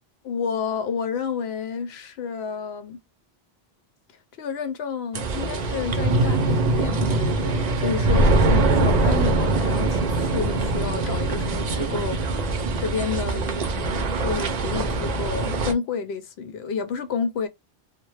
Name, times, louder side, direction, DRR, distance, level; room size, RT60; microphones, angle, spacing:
voice 1, 0.2-3.0 4.4-17.5, left 6 dB, 90° left, 0.9 m, -30 dB
sound 1, 5.1-15.7, right 2 dB, 55° right, 0.5 m, -23 dB
2.2 x 2.0 x 3.0 m
omnidirectional pair, 1.0 m